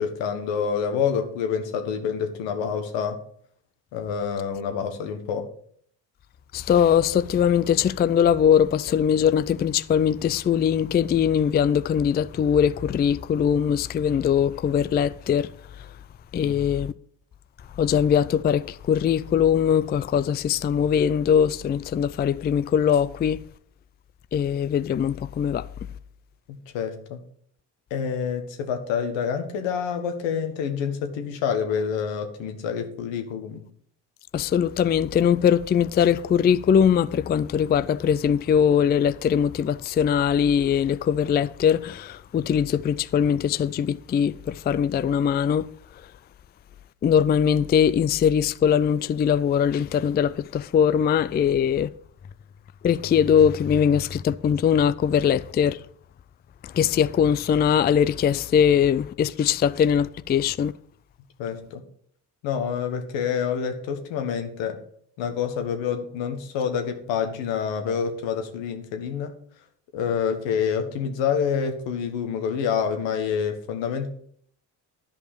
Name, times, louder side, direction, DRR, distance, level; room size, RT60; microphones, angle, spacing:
voice 1, 0.0-3.2 3.9-5.5 16.4-16.6 26.5-27.2 27.9-33.6 61.4-61.8 62.4-64.8 65.2-69.3 69.9-74.1, left 7 dB, 85° left, 1.5 m, -27 dB
voice 2, 6.5-15.5 16.3-16.9 17.8-23.4 24.3-25.7 34.3-45.7 47.0-51.9 52.8-55.8 56.6-60.7, left 8 dB, 25° left, 0.3 m, -21 dB
10.5 x 5.4 x 6.8 m
supercardioid pair, 65°, 44 cm